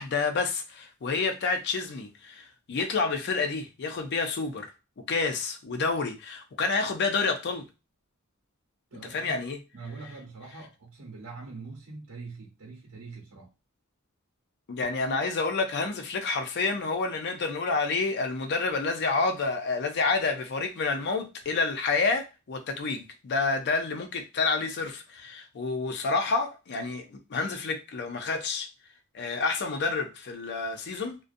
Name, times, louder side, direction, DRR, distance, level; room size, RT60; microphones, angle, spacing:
voice 1, 0.0-4.7 5.1-7.7 9.1-9.6 14.7-28.7 29.1-31.2, left 4 dB, 55° left, 0.5 m, -29 dB
voice 2, 8.9-9.3 9.7-13.5, right 4 dB, 85° right, 0.9 m, -43 dB
2.4 x 2.2 x 2.5 m
head